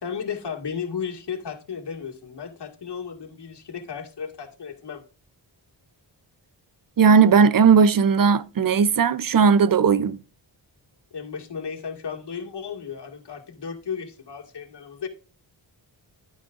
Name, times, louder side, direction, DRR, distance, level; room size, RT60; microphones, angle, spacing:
voice 1, 0.0-5.0 11.1-15.1, left 6 dB, 65° left, 2.2 m, -34 dB
voice 2, 7.0-10.2, right 6 dB, 50° right, 0.7 m, -17 dB
11.5 x 9.5 x 2.6 m
wide cardioid pair, 120°, 44 cm